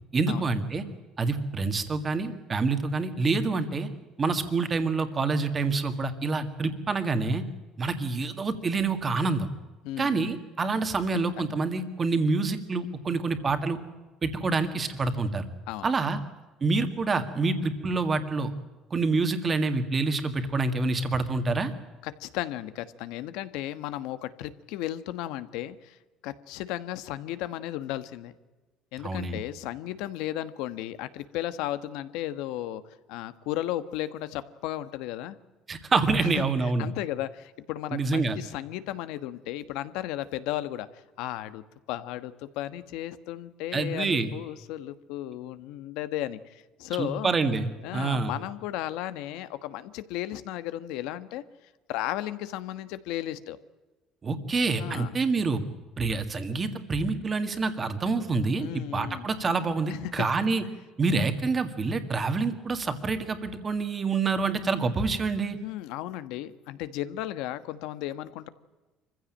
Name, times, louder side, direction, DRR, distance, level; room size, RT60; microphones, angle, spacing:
voice 1, 0.1-0.8 1.2-3.9 4.2-7.4 7.8-9.5 10.0-13.8 14.2-15.5 15.8-16.2 16.6-18.5 18.9-21.7 29.0-29.4 35.7-36.9 37.9-38.4 43.7-44.3 47.0-48.3 54.2-55.6 56.0-60.6 61.0-65.6, right 3 dB, 20° right, 8 dB, 1.9 m, -27 dB
voice 2, 9.8-10.4 11.4-11.6 15.7-16.2 22.0-26.0 26.2-28.3 28.9-32.8 33.1-35.4 36.2-41.6 41.9-47.3 47.8-51.4 51.9-53.6 54.8-55.1 58.6-59.3 59.9-60.1 65.6-68.5, left 13 dB, 75° left, 13 dB, 1.3 m, -35 dB
25.0 x 15.5 x 9.0 m, 1.2 s
cardioid pair, 165°, 0 cm